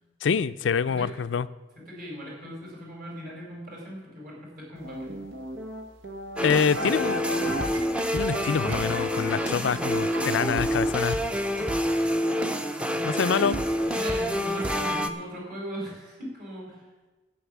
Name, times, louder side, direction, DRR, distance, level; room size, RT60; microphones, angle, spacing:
voice 1, 0.2-1.5 6.4-7.2 8.1-11.2 13.0-13.6, left 6 dB, 70° left, 15 dB, 0.4 m, -26 dB
voice 2, 1.7-5.2 9.5-9.8 12.2-13.3 13.9-16.8, equal, 50° right, -2 dB, 4.8 m, -39 dB
sound 1, 4.8-11.7, equal, 90° right, 1.6 m, -37 dB
sound 2, 6.4-15.1, equal, 5° right, 0.6 m, -27 dB
11.5 x 8.6 x 7.2 m, 1.2 s
head